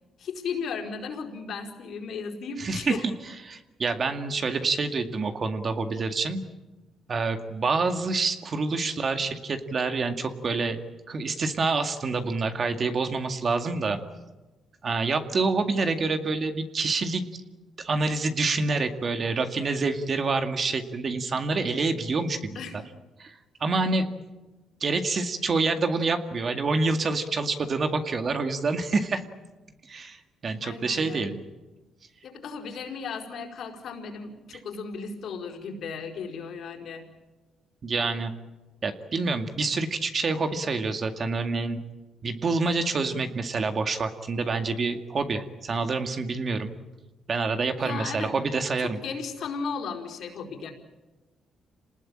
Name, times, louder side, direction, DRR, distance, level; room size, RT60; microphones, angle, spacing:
voice 1, 0.2-3.1 22.5-22.8 30.6-31.4 32.2-37.0 47.8-48.4 48.8-50.7, left 5 dB, 70° left, 2 dB, 4.6 m, -35 dB
voice 2, 2.6-3.1 3.4-6.4 7.1-10.8 11.1-14.0 14.8-17.2 17.8-22.8 23.2-24.1 24.8-29.2 29.9-31.3 37.8-38.3 38.8-41.8 42.2-46.7 47.3-49.0, right 3 dB, 45° right, 7 dB, 2.1 m, -27 dB
27.5 x 19.5 x 8.8 m, 1.1 s
cardioid pair, 90°, 0 cm